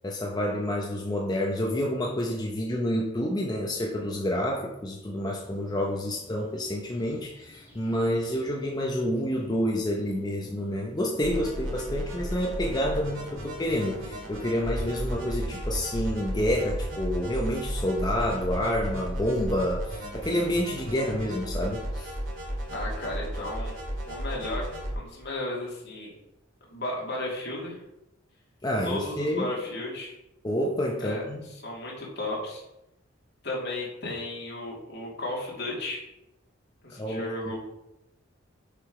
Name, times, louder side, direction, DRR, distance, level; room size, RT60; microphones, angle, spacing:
voice 1, 0.0-22.1 28.6-29.5 30.4-31.4 37.0-37.2, equal, 20° left, -1 dB, 0.7 m, -28 dB
sound 1, 5.4-15.2, left 1 dB, 10° right, 2.9 m, -52 dB
sound 2, 11.2-24.9, equal, 70° right, 2.1 m, -34 dB
voice 2, 22.7-23.7 24.1-24.6 24.9-26.1 26.7-27.8 28.8-30.1 31.0-32.6 33.4-36.0 36.8-37.6, left 1 dB, 60° left, -4 dB, 2.5 m, -34 dB
6.8 x 4.9 x 4.9 m, 0.90 s
head